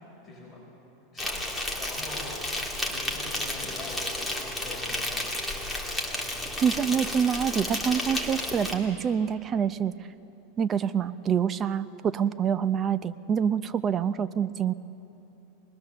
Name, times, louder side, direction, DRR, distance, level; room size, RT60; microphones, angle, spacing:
voice 1, 0.2-0.6 1.1-5.3, left 2 dB, 15° left, -5 dB, 5.4 m, -43 dB
Insect, 1.2-8.7, left 1 dB, ahead, 2.3 m, -32 dB
voice 2, 6.6-9.9 10.6-14.7, right 7 dB, 25° right, 13 dB, 0.6 m, -26 dB
25.5 x 20.5 x 6.8 m, 3.0 s
supercardioid pair, 145°, 0 cm